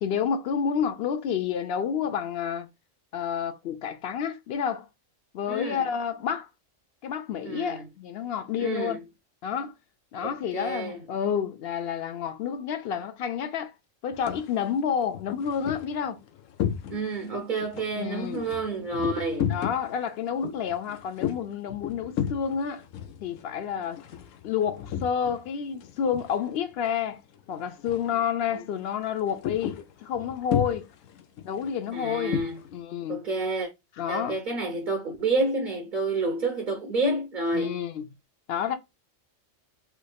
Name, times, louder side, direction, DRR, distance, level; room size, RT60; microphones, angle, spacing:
voice 1, 0.0-2.7 3.1-4.9 5.3-6.5 7.0-9.0 9.4-9.7 10.1-13.7 14.0-16.2 18.0-18.4 19.5-22.8 23.2-24.0 24.4-27.2 27.5-30.9 31.4-32.4 32.7-33.2 34.0-34.4 37.5-38.1 38.5-38.8, left 8 dB, 60° left, 0.7 m, -29 dB
voice 2, 5.5-5.8 7.4-7.9 8.6-9.0 10.2-11.0 16.9-19.6 28.5-28.6 31.9-32.6 33.1-33.7 34.1-37.8, right 2 dB, 45° right, 0.8 m, -29 dB
sound 1, 14.1-14.5 15.0-17.3 17.6-25.5 25.7-26.9 27.1-27.4 27.8-28.2 28.5-32.7, left 9 dB, 85° left, 1.0 m, -34 dB
3.5 x 3.1 x 2.2 m
omnidirectional pair, 1.3 m